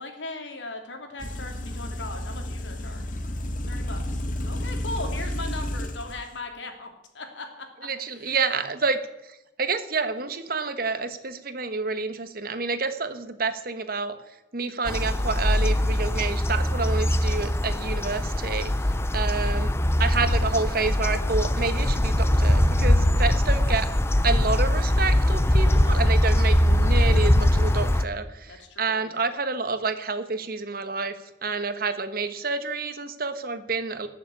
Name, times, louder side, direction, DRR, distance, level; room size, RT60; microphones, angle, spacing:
voice 1, 0.0-3.0 3.7-6.9 7.1-8.4 25.6-25.8 28.5-29.2, left 2 dB, 80° left, 4 dB, 3.0 m, -39 dB
sound 1, 1.2-6.2, left 1 dB, 45° left, 1.5 m, -31 dB
voice 2, 7.8-14.2 14.5-18.7 19.1-23.9 24.2-34.1, right 4 dB, 50° right, 11 dB, 1.3 m, -29 dB
sound 2, 14.9-28.0, left 1 dB, 15° left, 0.6 m, -22 dB
19.0 x 7.3 x 8.5 m, 0.95 s
head